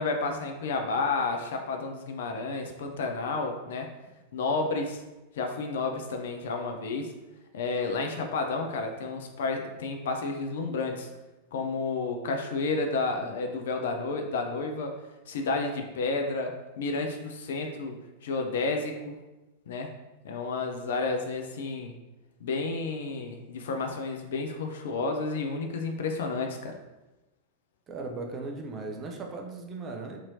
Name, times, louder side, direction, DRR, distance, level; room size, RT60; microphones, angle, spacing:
voice 1, 0.0-3.9 4.3-5.0 5.3-7.1 7.5-11.1 11.5-14.9 15.3-18.0 18.2-19.2 19.7-19.9 20.2-21.9 22.4-26.7, left 3 dB, 60° left, 4 dB, 0.4 m, -31 dB
voice 2, 27.9-30.2, right 3 dB, 25° right, 2 dB, 0.4 m, -37 dB
2.8 x 2.7 x 2.6 m, 1.0 s
figure-of-eight pair, 90°, 0 cm